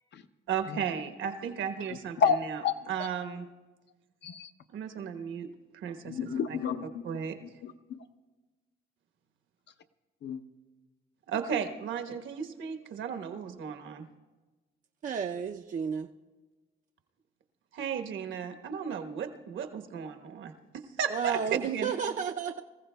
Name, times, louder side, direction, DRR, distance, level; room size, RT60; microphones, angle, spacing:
voice 1, 0.5-2.2 2.5-2.6 2.9-3.4 4.7-6.6 7.0-7.4 11.3-14.1 17.7-21.9, right 7 dB, 75° right, 1.1 m, -35 dB
voice 2, 2.2-2.7 3.0-3.1 4.2-4.5 6.0-8.1 10.2-10.4, left 6 dB, 60° left, 0.7 m, -31 dB
voice 3, 15.0-16.1 21.1-22.6, right 7 dB, 40° right, 0.4 m, -32 dB
24.5 x 14.5 x 2.3 m
cardioid pair, 90°, 20 cm